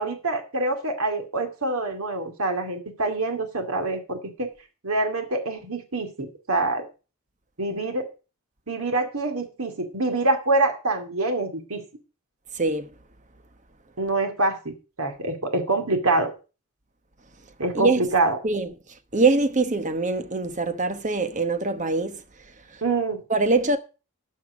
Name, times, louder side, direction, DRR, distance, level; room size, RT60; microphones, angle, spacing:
voice 1, 0.0-4.5 4.8-6.8 7.6-8.1 8.7-11.8 14.0-16.3 17.6-18.4 22.8-23.2, right 2 dB, 70° right, 2.3 m, -25 dB
voice 2, 12.5-12.9 17.7-18.0 18.4-18.7 19.1-22.2 22.7-22.8 23.3-23.8, right 3 dB, 35° right, 1.0 m, -23 dB
12.0 x 5.9 x 6.2 m
head